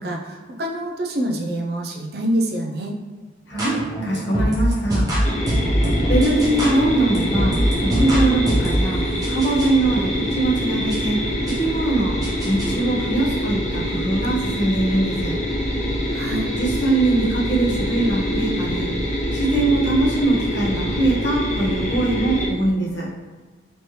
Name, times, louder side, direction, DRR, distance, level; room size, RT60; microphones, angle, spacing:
voice 1, 0.0-3.0 16.1-16.5, right 1 dB, 60° right, 0 dB, 0.6 m, -26 dB
voice 2, 3.5-5.1 6.1-12.2 12.4-15.4 16.5-18.9 19.3-23.1, right 2 dB, 80° left, -4 dB, 1.1 m, -22 dB
sound 1, 3.5-12.8, equal, 20° right, 0.9 m, -24 dB
sound 2, 5.2-22.5, equal, 40° left, 0.6 m, -25 dB
4.2 x 3.0 x 3.2 m, 1.4 s
head